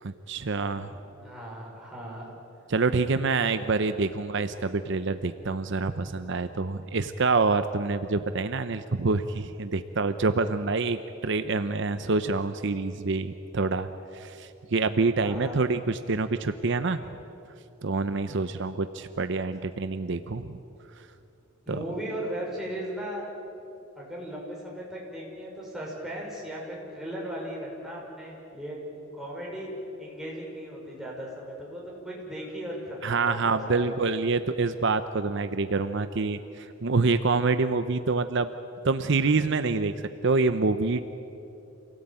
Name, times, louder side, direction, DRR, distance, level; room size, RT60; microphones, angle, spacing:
voice 1, 0.0-0.9 2.7-13.9 14.1-17.0 17.8-20.6 21.7-21.8 33.0-38.5 38.8-39.9 40.2-41.0, right 3 dB, 60° right, 10 dB, 0.8 m, -26 dB
voice 2, 0.7-2.3 15.2-15.6 21.7-23.2 24.0-28.8 29.1-34.0, equal, ahead, -4 dB, 6.0 m, -37 dB
27.5 x 17.5 x 9.0 m, 2.8 s
head